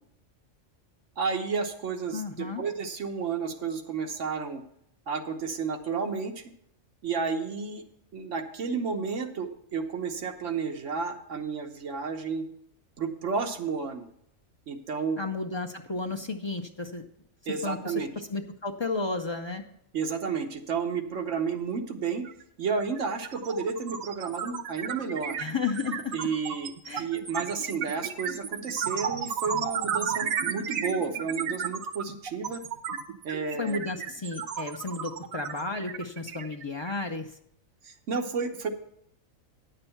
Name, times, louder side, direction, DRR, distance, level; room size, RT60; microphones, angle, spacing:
voice 1, 1.2-4.6 5.1-6.4 7.0-7.8 8.1-12.4 13.0-14.1 14.7-15.2 17.5-18.1 19.9-22.3 22.6-25.4 26.1-26.7 27.0-32.6 33.2-33.8 37.8-38.7, right 5 dB, 65° right, 5 dB, 1.3 m, -31 dB
voice 2, 2.1-2.6 15.2-17.0 17.6-18.0 18.3-19.6 25.4-26.1 26.9-27.1 33.6-37.3, left 3 dB, 45° left, 4 dB, 0.3 m, -33 dB
sound 1, 22.3-22.4 22.7-37.1, right 7 dB, 85° right, 1.2 m, -33 dB
9.9 x 6.7 x 5.6 m, 0.73 s
omnidirectional pair, 1.4 m